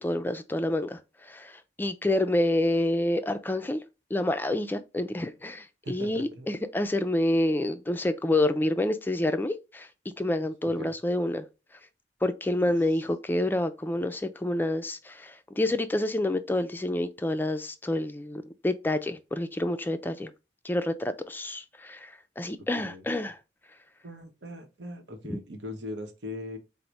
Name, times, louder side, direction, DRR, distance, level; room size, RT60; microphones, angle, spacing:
voice 1, 0.0-3.8 4.1-9.9 10.2-11.4 12.2-20.3 20.6-23.4 25.3-25.4, left 1 dB, 10° left, 0.3 m, -28 dB
voice 2, 5.8-6.5 10.6-10.9 22.6-23.0 24.0-26.6, left 1 dB, 90° right, 0.8 m, -40 dB
4.5 x 2.1 x 3.9 m
head